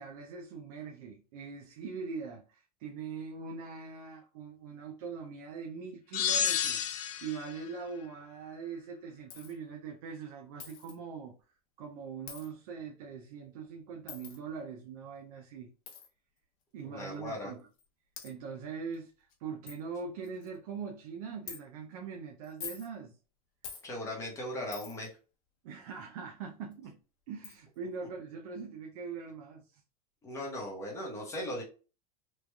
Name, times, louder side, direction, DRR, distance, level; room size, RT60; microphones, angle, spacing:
voice 1, 0.0-11.3 11.8-15.7 16.7-17.7 18.2-23.1 25.6-27.0 27.3-29.8, right 5 dB, 65° right, 0.5 m, -42 dB
sound 1, 6.1-7.5, left 8 dB, 35° left, 0.4 m, -30 dB
Coin (dropping), 9.3-9.6 10.6-11.0 12.3-12.5 14.1-14.4 15.9-16.1 17.0-17.1 17.8-17.9 18.2-18.3 18.9-19.0 19.3-19.4 19.7-19.8 20.2-20.6 21.5-21.6 22.4-22.9 23.6-23.9 24.7-25.1 26.7-26.8 27.4-27.6, left 8 dB, 60° left, 0.8 m, -45 dB
voice 2, 16.8-17.5 23.8-25.1 30.2-31.6, left 1 dB, 15° left, 0.9 m, -38 dB
3.1 x 2.4 x 2.2 m
supercardioid pair, 150°, 20 cm